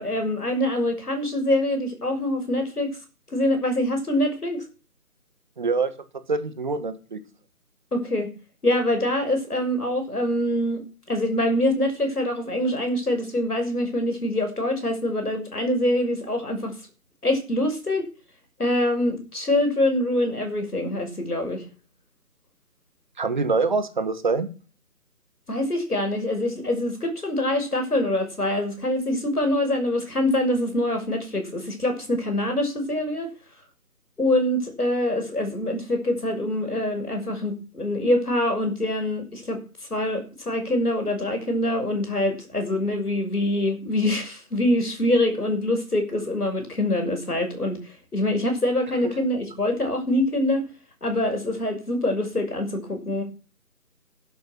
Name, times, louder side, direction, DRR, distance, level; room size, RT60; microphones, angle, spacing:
voice 1, 0.0-3.0 3.3-4.6 7.9-8.3 8.6-16.7 17.2-18.1 18.6-21.6 25.5-33.3 34.2-39.6 39.9-50.7 51.0-53.2, left 1 dB, 75° left, 5 dB, 6.3 m, -24 dB
voice 2, 5.6-5.9 6.3-7.2 23.2-24.5 49.0-49.1, right 4 dB, 30° right, 12 dB, 1.6 m, -25 dB
11.5 x 11.5 x 6.1 m, 0.35 s
figure-of-eight pair, 160°, 46 cm